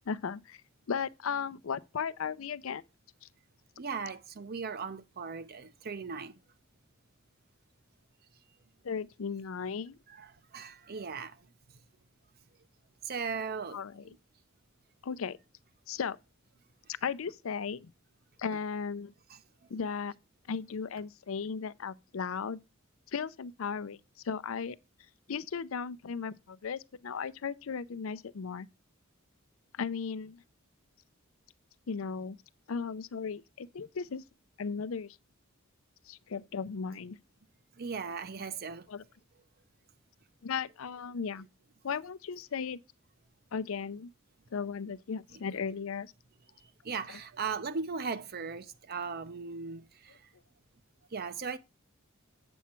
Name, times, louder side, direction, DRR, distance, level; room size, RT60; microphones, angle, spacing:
voice 1, 0.1-0.6 0.9-2.8 3.2-3.3 8.8-10.0 13.7-14.2 15.0-15.4 15.9-16.2 17.0-17.9 18.4-19.1 19.7-20.1 20.5-22.6 23.1-24.0 24.2-24.8 25.3-28.7 29.8-30.4 31.9-32.4 32.7-34.2 34.6-35.2 36.1-37.2 38.9-39.0 40.4-41.5 41.8-42.8 43.5-44.1 44.5-46.1 47.1-47.2, left 6 dB, 75° left, 0.5 m, -36 dB
voice 2, 3.8-6.3 10.2-10.3 10.5-11.4 13.1-13.8 14.0-14.1 37.8-38.9 46.8-50.2 51.1-51.6, right 5 dB, 50° right, 0.6 m, -37 dB
8.4 x 7.1 x 4.4 m
head